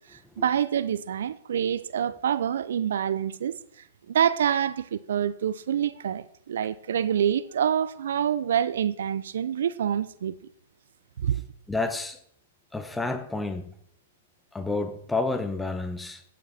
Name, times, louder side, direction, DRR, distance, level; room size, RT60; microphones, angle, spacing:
voice 1, 0.1-3.6 4.1-10.4 11.2-11.4, right 9 dB, 75° right, 0.5 m, -26 dB
voice 2, 11.7-12.2 12.7-13.7 14.5-16.2, left 3 dB, 5° left, 0.9 m, -30 dB
14.0 x 7.5 x 4.2 m
hypercardioid pair, 125°, 0 cm